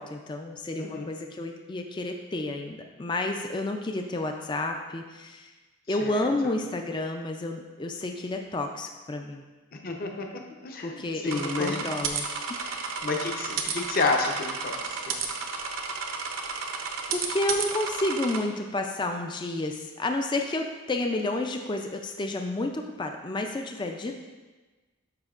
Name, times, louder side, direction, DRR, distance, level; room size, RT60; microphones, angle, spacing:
voice 1, 0.0-5.5 5.9-9.4 10.8-12.3 12.6-13.0 17.1-24.1, left 2 dB, 20° left, 4 dB, 0.4 m, -31 dB
voice 2, 9.7-11.8 13.0-14.8 15.1-15.2, left 3 dB, 45° left, 2 dB, 0.7 m, -30 dB
sound 1, 11.3-18.4, right 5 dB, 75° right, 0.7 m, -32 dB
11.5 x 5.1 x 2.4 m, 1.2 s
head